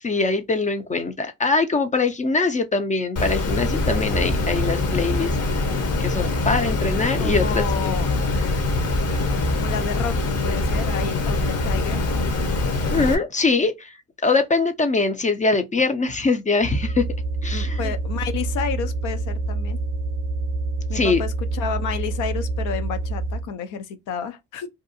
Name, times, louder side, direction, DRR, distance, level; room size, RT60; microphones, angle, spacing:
voice 1, 0.0-5.4 6.0-8.0 12.9-14.0 14.2-17.1 17.4-17.9 20.9-21.2, left 3 dB, 25° left, 0.4 m, -22 dB
Water, 3.2-13.2, left 2 dB, 55° left, 0.8 m, -23 dB
voice 2, 7.2-8.1 9.5-12.2 17.5-19.8 20.9-24.7, left 7 dB, 85° left, 0.6 m, -31 dB
sound 1, 16.6-23.5, right 3 dB, 30° right, 0.6 m, -27 dB
2.6 x 2.3 x 2.5 m
cardioid pair, 90°, 30 cm